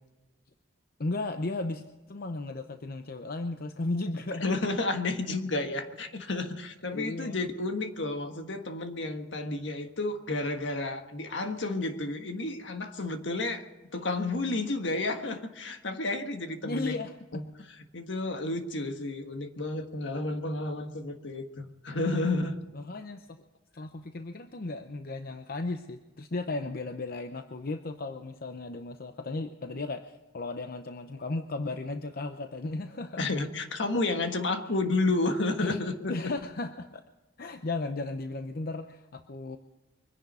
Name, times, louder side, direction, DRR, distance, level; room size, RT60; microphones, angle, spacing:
voice 1, 1.0-4.4 6.9-7.4 16.6-17.4 22.7-23.4 23.7-33.3 35.6-37.0 37.4-39.6, left 2 dB, 50° left, 7 dB, 0.7 m, -35 dB
voice 2, 4.4-13.7 13.9-16.9 17.3-17.4 17.9-22.5 33.2-36.1, left 2 dB, 70° left, 6 dB, 1.5 m, -31 dB
23.5 x 10.5 x 5.5 m, 1.1 s
head